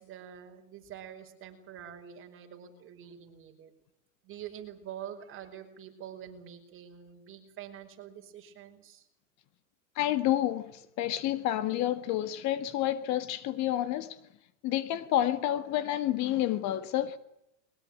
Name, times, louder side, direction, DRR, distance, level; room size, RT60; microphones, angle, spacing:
voice 1, 0.0-3.7 4.2-9.0, right 9 dB, 30° right, 5.3 m, -46 dB
voice 2, 10.0-14.2 14.6-17.2, left 13 dB, 45° left, 1.8 m, -29 dB
22.0 x 21.0 x 8.9 m
supercardioid pair, 130°, 39 cm